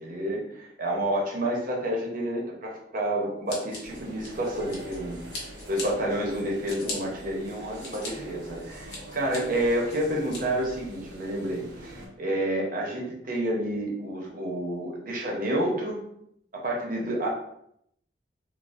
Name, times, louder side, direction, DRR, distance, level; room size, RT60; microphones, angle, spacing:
voice 1, 0.0-16.0 16.5-17.3, right 1 dB, 50° right, -1 dB, 0.8 m, -29 dB
Scissors, 3.5-5.0 5.3-5.9 6.3-7.0 7.5-8.1 8.5-9.4 9.9-10.4, left 3 dB, 70° left, 1.0 m, -38 dB
sound 1, 3.8-12.1, equal, 80° right, 0.9 m, -44 dB
3.9 x 2.1 x 2.5 m, 0.74 s
head